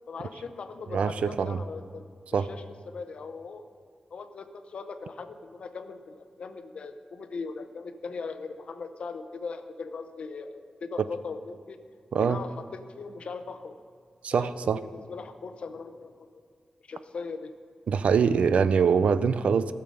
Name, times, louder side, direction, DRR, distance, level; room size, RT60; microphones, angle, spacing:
voice 1, 0.1-2.0 2.3-3.6 4.1-11.8 12.2-13.8 14.3-14.5 14.9-16.3 16.8-17.5, left 4 dB, 60° left, 9 dB, 0.7 m, -39 dB
voice 2, 0.9-1.6 2.3-2.5 12.1-12.4 14.2-14.8 17.9-19.7, right 6 dB, 80° right, 14 dB, 0.4 m, -24 dB
15.5 x 6.7 x 5.4 m, 2.1 s
wide cardioid pair, 170°, 2 cm